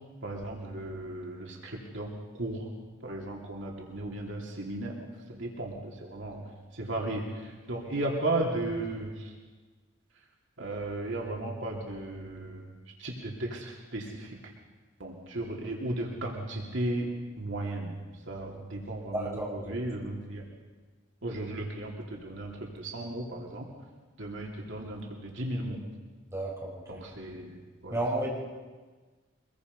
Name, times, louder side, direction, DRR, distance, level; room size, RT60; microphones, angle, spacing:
voice 1, 0.2-2.7 3.0-5.0 5.3-9.3 10.6-12.7 13.0-14.4 15.0-17.1 17.4-18.0 18.3-20.5 21.2-23.7 24.2-25.8 26.9-28.0, right 1 dB, 65° right, -1 dB, 3.1 m, -35 dB
voice 2, 19.1-19.8 26.3-27.0 27.9-28.3, right 1 dB, 15° right, -4 dB, 5.1 m, -32 dB
24.5 x 22.0 x 5.5 m, 1.4 s
head